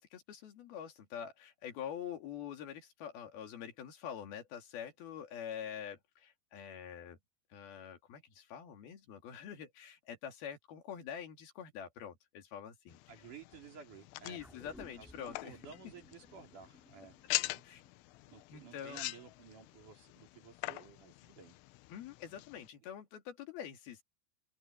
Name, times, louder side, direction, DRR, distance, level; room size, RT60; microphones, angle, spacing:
voice 1, 0.0-7.2 7.5-13.0 14.2-15.6 17.6-17.8 18.5-19.0 21.9-24.0, left 8 dB, 55° left, 4.1 m, -46 dB
sound 1, 12.9-22.7, left 20 dB, 85° left, 3.0 m, -44 dB
voice 2, 13.1-14.4 15.0-17.6 18.3-21.6, right 6 dB, 45° right, 4.7 m, -54 dB
sound 2, 14.4-19.0 19.3-19.4, equal, ahead, 2.5 m, -60 dB
open air
omnidirectional pair, 5.4 m